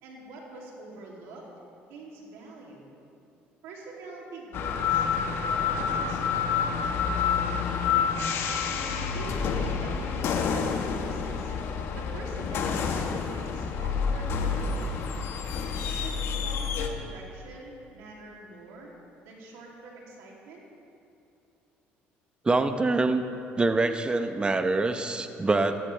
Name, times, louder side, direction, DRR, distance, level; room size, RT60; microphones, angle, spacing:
voice 1, 0.0-1.4 1.9-2.9 3.6-7.9 8.6-11.5 11.9-15.0 15.8-18.9 19.2-20.6, right 2 dB, 80° right, -2 dB, 2.9 m, -44 dB
sound 1, 4.5-16.9, left 6 dB, 65° left, 1.2 m, -28 dB
voice 2, 22.4-23.2 23.6-25.8, right 3 dB, 20° right, 8 dB, 0.9 m, -25 dB
18.0 x 14.0 x 3.4 m, 2.7 s
supercardioid pair, 90°, 5 cm